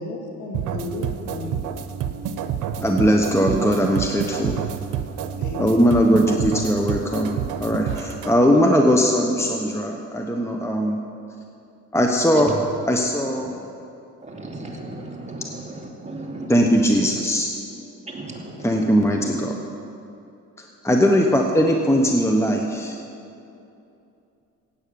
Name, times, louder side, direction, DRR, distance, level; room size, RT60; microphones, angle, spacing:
voice 1, 0.0-1.6 5.4-5.9, left 2 dB, 80° left, 1 dB, 2.4 m, -33 dB
sound 1, 0.5-8.3, right 8 dB, 85° right, 0.8 m, -29 dB
voice 2, 2.8-4.7 5.6-11.0 11.9-12.5 12.9-13.5 16.5-17.5 18.6-19.6 20.6-23.0, equal, 10° left, 2 dB, 1.1 m, -20 dB
voice 3, 14.2-16.7 18.0-19.0, right 2 dB, 25° right, -1 dB, 2.7 m, -35 dB
16.5 x 8.9 x 7.0 m, 2.7 s
cardioid pair, 90°, 30 cm